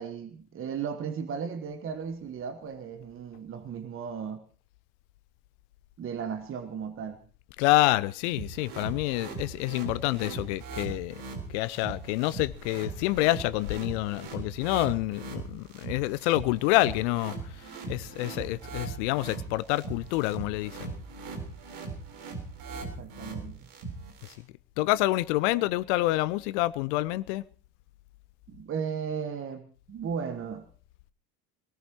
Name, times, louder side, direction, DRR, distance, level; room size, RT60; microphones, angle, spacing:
voice 1, 0.0-4.4 6.0-7.2 22.8-23.6 25.6-25.7 28.5-30.7, right 6 dB, 25° right, 1.3 m, -36 dB
voice 2, 7.6-11.2 11.5-17.3 17.9-20.9 24.8-27.4, left 18 dB, 45° left, 0.7 m, -27 dB
sound 1, 8.3-24.3, right 4 dB, 45° right, 4.1 m, -40 dB
23.5 x 18.0 x 3.0 m
figure-of-eight pair, 70°, 49 cm